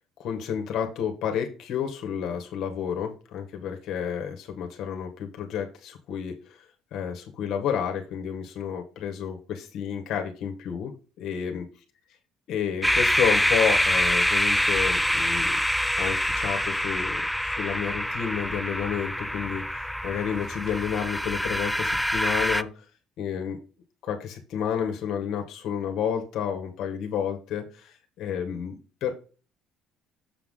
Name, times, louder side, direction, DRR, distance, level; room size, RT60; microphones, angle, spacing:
voice 1, 0.2-11.6 12.5-15.6 15.9-22.9 23.2-23.6 24.0-29.1, left 8 dB, 60° left, 4 dB, 1.6 m, -31 dB
sound 1, 12.8-22.6, equal, ahead, 0.3 m, -25 dB
7.0 x 5.9 x 3.8 m, 0.36 s
cardioid pair, 155°, 0 cm